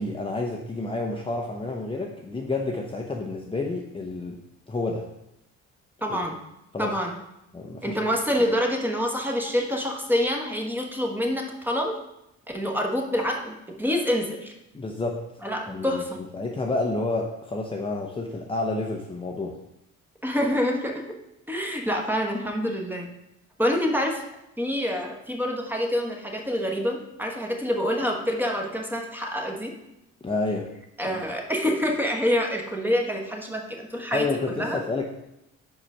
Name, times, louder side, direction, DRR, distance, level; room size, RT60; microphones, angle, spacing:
voice 1, 0.0-4.4 4.7-5.1 6.1-6.2 6.7-6.9 7.5-8.0 14.7-15.2 15.7-16.0 16.3-19.6 30.2-30.7 31.0-31.2 34.1-35.0, left 2 dB, 15° left, 0 dB, 0.7 m, -29 dB
voice 2, 6.0-6.4 6.8-7.2 7.8-12.0 12.5-14.5 15.4-16.2 20.2-21.1 21.5-23.1 23.6-24.2 24.6-29.7 31.0-34.8, equal, 5° right, 1 dB, 1.2 m, -26 dB
5.0 x 4.8 x 5.4 m, 0.86 s
cardioid pair, 90°, 30 cm